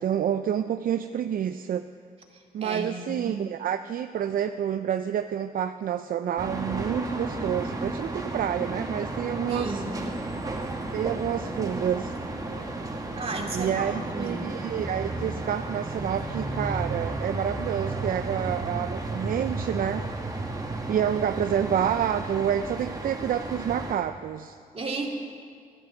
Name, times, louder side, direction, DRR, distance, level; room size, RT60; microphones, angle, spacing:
voice 1, 0.0-1.8 2.5-9.8 10.9-12.1 13.5-20.1 20.9-24.6, right 9 dB, 65° right, 9 dB, 0.4 m, -28 dB
voice 2, 2.3-3.4 9.5-10.0 13.2-14.6 24.7-25.1, right 3 dB, 40° right, 0 dB, 2.3 m, -34 dB
sound 1, 6.4-23.9, right 2 dB, 25° right, 1.6 m, -33 dB
12.0 x 11.0 x 7.0 m, 2.2 s
cardioid pair, 80°, 15 cm